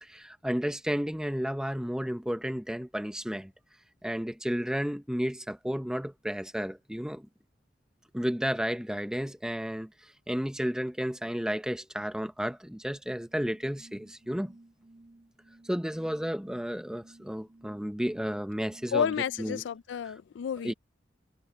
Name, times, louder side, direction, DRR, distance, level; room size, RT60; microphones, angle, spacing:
voice 1, 0.0-3.5 4.0-7.3 8.1-9.9 10.3-14.5 15.6-19.1 19.4-19.6 20.6-20.7, equal, 5° right, 0.7 m, -32 dB
sound 1, 13.2-19.8, right 2 dB, 35° right, 2.4 m, -56 dB
voice 2, 18.9-20.7, left 7 dB, 85° left, 0.3 m, -30 dB
head